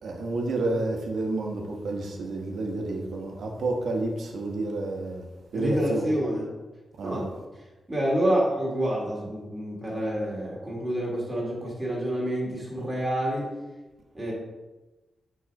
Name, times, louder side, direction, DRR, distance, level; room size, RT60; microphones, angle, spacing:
voice 1, 0.0-5.2 5.5-6.1 7.0-7.2, right 2 dB, 80° right, 1 dB, 1.1 m, -30 dB
voice 2, 5.5-6.4 7.0-7.3 7.9-13.5 14.1-14.3, equal, 10° right, -5 dB, 2.5 m, -28 dB
7.3 x 4.0 x 5.2 m, 1.1 s
wide cardioid pair, 120°, 0 cm